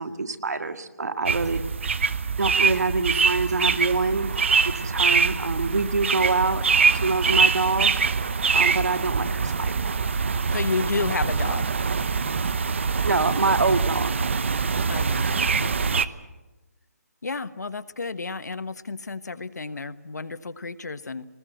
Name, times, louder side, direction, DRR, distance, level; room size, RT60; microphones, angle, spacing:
voice 1, 0.0-1.6 2.4-4.4 4.8-6.6 6.9-7.9 8.5-9.9 13.0-14.2, right 3 dB, 75° right, 8 dB, 1.9 m, -25 dB
sound 1, 1.3-16.1, right 5 dB, 45° right, 0.9 m, -24 dB
voice 2, 10.5-11.7 14.9-16.0 17.2-21.3, left 4 dB, 85° left, 13 dB, 1.3 m, -31 dB
21.5 x 20.0 x 7.9 m, 1.1 s
hypercardioid pair, 175°, 9 cm